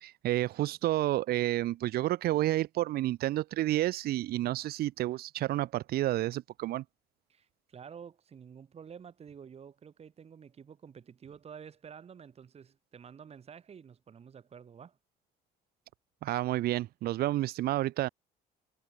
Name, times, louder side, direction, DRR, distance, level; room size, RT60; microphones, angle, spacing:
voice 1, 0.0-6.8 16.2-18.1, right 15 dB, 65° right, 0.6 m, -30 dB
voice 2, 7.3-15.0, right 7 dB, 35° right, 2.1 m, -50 dB
cardioid pair, 110°, 17 cm